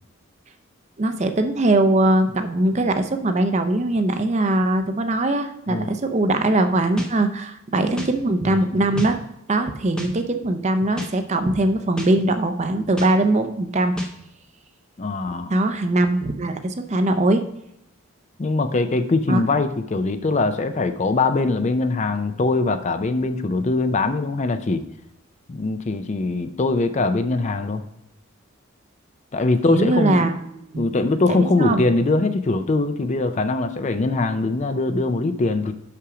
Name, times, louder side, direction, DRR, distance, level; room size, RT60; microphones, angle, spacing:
voice 1, 1.0-9.2 9.5-13.9 15.5-17.4 19.3-19.5 29.7-30.9 31.3-31.8, right 2 dB, 30° right, 8 dB, 0.5 m, -21 dB
sound 1, 7.0-7.1 8.0-8.1 9.0-9.1 10.0-10.1 11.0-11.1 12.0-12.1 13.0-13.1 14.0-14.1, left 2 dB, 5° left, 0.8 m, -29 dB
voice 2, 15.0-15.5 18.4-24.8 25.5-27.8 29.3-30.3 30.8-35.7, left 3 dB, 30° left, 9 dB, 0.4 m, -22 dB
6.2 x 5.8 x 4.8 m, 0.80 s
head